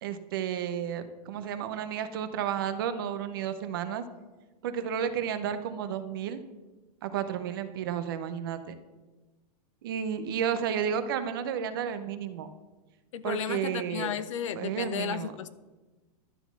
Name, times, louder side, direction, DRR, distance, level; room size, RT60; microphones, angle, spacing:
voice 1, 0.0-4.0 4.6-6.4 7.0-8.8 9.8-12.5 13.2-14.2 14.6-15.3, right 8 dB, 35° right, 10 dB, 0.5 m, -32 dB
voice 2, 13.1-15.5, left 9 dB, 50° left, 15 dB, 0.5 m, -34 dB
12.0 x 4.0 x 7.0 m, 1.2 s
supercardioid pair, 180°, 20 cm